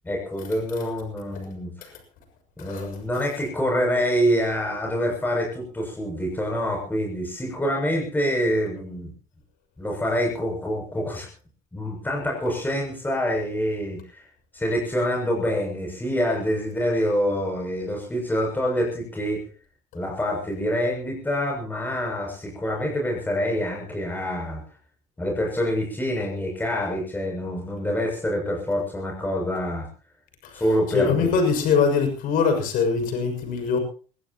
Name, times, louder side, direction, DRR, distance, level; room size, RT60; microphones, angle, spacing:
voice 1, 0.0-1.9 2.6-9.1 9.8-11.3 11.7-14.3 14.5-19.5 19.9-24.6 25.2-29.9 30.5-31.3, equal, 10° left, 0 dB, 7.1 m, -26 dB
voice 2, 2.6-2.9 30.4-30.6 30.9-33.8, left 5 dB, 70° left, 6 dB, 6.6 m, -23 dB
24.5 x 16.0 x 3.0 m, 0.39 s
supercardioid pair, 95°, 15 cm